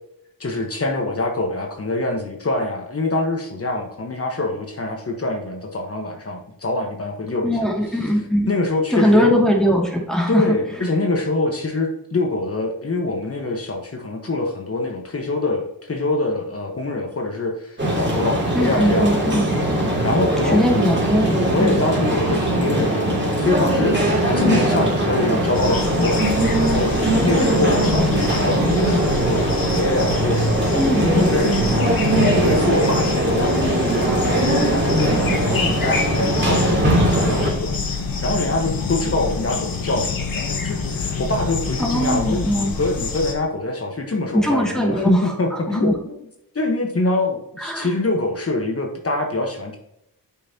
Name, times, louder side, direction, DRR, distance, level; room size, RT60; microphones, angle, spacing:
voice 1, 0.4-7.7 8.0-8.2 8.5-9.3 10.3-19.7 20.0-20.9 21.3-46.1 46.5-49.8, left 2 dB, 40° left, 2 dB, 1.3 m, -25 dB
voice 2, 7.4-8.5 8.9-10.6 18.5-19.5 20.4-21.8 30.8-31.7 41.8-42.7 44.3-45.9 47.6-47.9, equal, ahead, -1 dB, 2.4 m, -20 dB
sound 1, 17.8-37.5, right 1 dB, 30° right, 2.8 m, -20 dB
sound 2, 25.5-43.3, left 4 dB, 65° left, 1.3 m, -28 dB
8.4 x 5.7 x 2.9 m, 0.79 s
cardioid pair, 60°, 37 cm